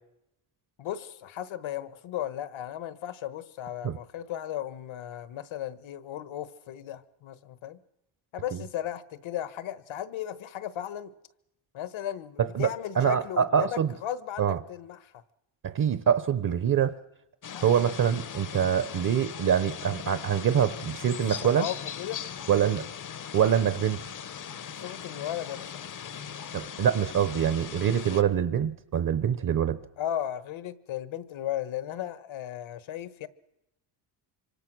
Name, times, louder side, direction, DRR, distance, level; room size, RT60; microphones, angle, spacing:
voice 1, 0.8-7.8 8.3-11.1 11.7-15.2 17.5-17.6 21.4-22.3 24.8-26.4 30.0-33.3, left 11 dB, 65° left, 1.4 m, -36 dB
voice 2, 12.4-13.9 14.4-14.6 15.6-16.9 17.6-21.7 22.5-22.8 23.3-24.0 26.5-29.8, right 8 dB, 40° right, 0.9 m, -25 dB
sound 1, 17.4-28.2, left 8 dB, 40° left, 0.9 m, -39 dB
25.5 x 25.5 x 6.2 m
cardioid pair, 140°, 50 cm